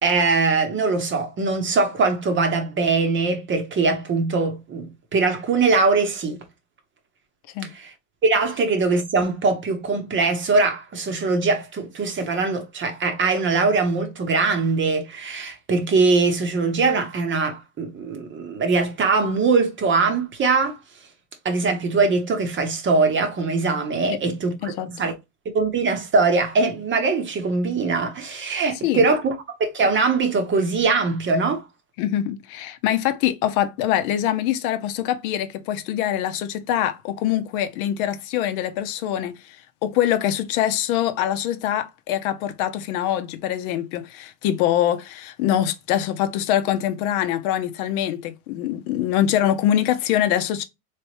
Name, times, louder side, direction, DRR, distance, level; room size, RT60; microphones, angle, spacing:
voice 1, 0.0-6.4 7.7-7.9 8.2-20.8 21.4-25.1 25.5-31.6, right 4 dB, 25° right, 0.8 m, -22 dB
voice 2, 32.0-50.6, left 11 dB, 65° left, 0.7 m, -24 dB
3.3 x 3.3 x 2.8 m
supercardioid pair, 120°, 46 cm